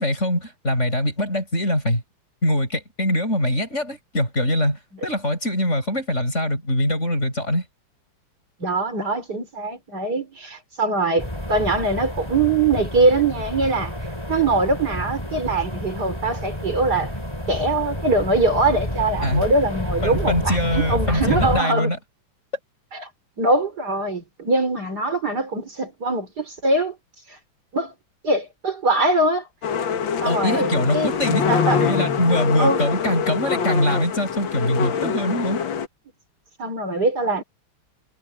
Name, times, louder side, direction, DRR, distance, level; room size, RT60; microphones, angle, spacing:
voice 1, 0.0-2.0 2.4-7.6 19.2-19.5 20.0-22.0 30.2-31.5 31.8-35.6, left 1 dB, 35° left, 8.4 m, -23 dB
voice 2, 8.6-14.0 14.3-17.1 17.5-21.9 22.9-23.1 23.4-27.0 27.3-27.4 27.7-27.9 28.2-29.5 30.2-31.1 31.5-31.8 32.6-32.9 36.6-37.4, right 2 dB, 50° right, 4.3 m, -22 dB
sound 1, 11.2-21.6, equal, 10° left, 5.4 m, -29 dB
sound 2, 29.6-35.9, left 6 dB, 70° left, 2.2 m, -24 dB
omnidirectional pair, 2.2 m